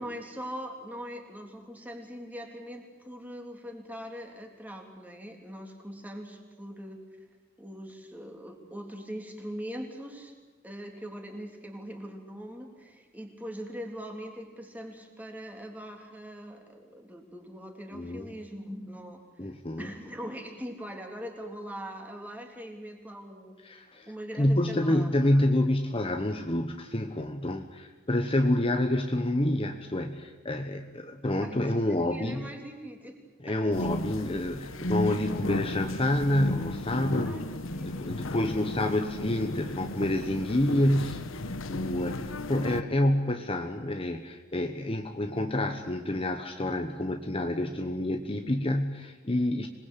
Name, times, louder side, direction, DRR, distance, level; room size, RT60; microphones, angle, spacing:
voice 1, 0.0-7.0 7.6-10.3 10.6-19.2 19.8-23.6 24.1-25.6 31.4-33.2 33.5-33.9 35.0-35.3 37.2-37.4 37.7-38.0 38.3-38.5, equal, 10° right, 2 dB, 3.2 m, -41 dB
voice 2, 17.9-18.4 19.4-19.9 23.6-24.1 24.4-32.5 33.4-37.4 37.8-49.7, left 1 dB, 30° left, 5 dB, 1.2 m, -28 dB
sound 1, 33.7-42.8, left 1 dB, 80° left, 1.2 m, -34 dB
26.0 x 20.0 x 8.5 m, 1.3 s
head